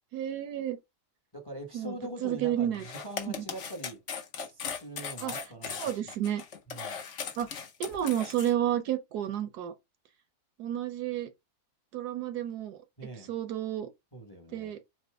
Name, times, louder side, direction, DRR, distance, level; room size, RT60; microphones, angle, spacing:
voice 1, 0.1-0.8 1.7-1.9 2.2-2.8 3.3-3.4 5.2-5.3 5.8-6.4 7.4-7.5 7.8-9.7 10.6-11.3 11.9-12.8 13.3-13.9 14.5-14.8, right 11 dB, 70° right, 1.2 m, -31 dB
voice 2, 1.3-4.0 4.4-6.0 6.7-7.0 13.0-13.3 14.1-14.7, right 1 dB, 15° left, 0.9 m, -43 dB
sound 1, 2.7-8.5, left 6 dB, 55° left, 1.0 m, -38 dB
4.2 x 2.8 x 4.4 m
omnidirectional pair, 1.8 m